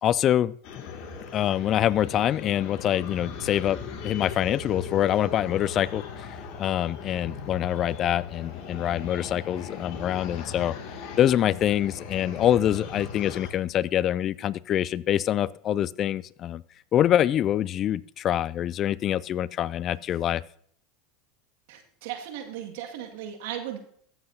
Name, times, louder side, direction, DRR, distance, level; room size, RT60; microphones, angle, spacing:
voice 1, 0.0-0.8 1.3-10.8 11.2-16.6 16.9-20.4, left 11 dB, 40° left, 21 dB, 0.3 m, -25 dB
sound 1, 0.6-13.5, left 5 dB, 55° left, 2.2 m, -38 dB
voice 2, 21.7-23.8, right 10 dB, 70° right, 3 dB, 1.9 m, -36 dB
14.5 x 8.0 x 2.7 m, 0.63 s
hypercardioid pair, 100°, 0 cm